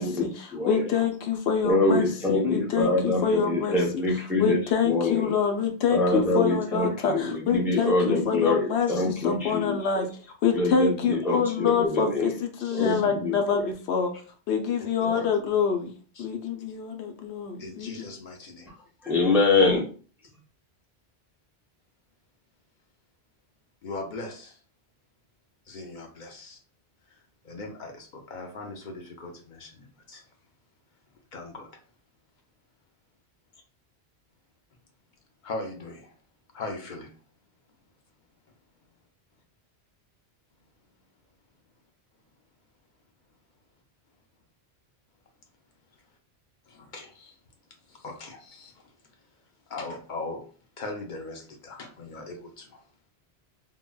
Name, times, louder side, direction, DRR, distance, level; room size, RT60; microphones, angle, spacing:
voice 1, 0.0-4.0 4.4-10.1 10.4-14.1 14.5-15.9 16.2-18.1, left 6 dB, 85° left, 5 dB, 0.8 m, -26 dB
voice 2, 0.5-0.9 1.6-4.6 4.8-5.3 5.9-10.1 10.5-12.3 12.7-13.7 15.0-15.3 19.0-19.9, left 2 dB, 5° right, -3 dB, 0.5 m, -25 dB
voice 3, 12.6-13.0 16.2-16.3 17.6-18.7 23.8-24.5 25.7-26.6 27.4-30.2 31.3-31.7 35.4-36.1 36.5-37.1 46.7-47.3 47.9-48.7 49.7-50.4 50.8-52.8, left 2 dB, 55° left, 2 dB, 0.7 m, -39 dB
3.7 x 2.1 x 2.2 m, 0.41 s
omnidirectional pair, 1.1 m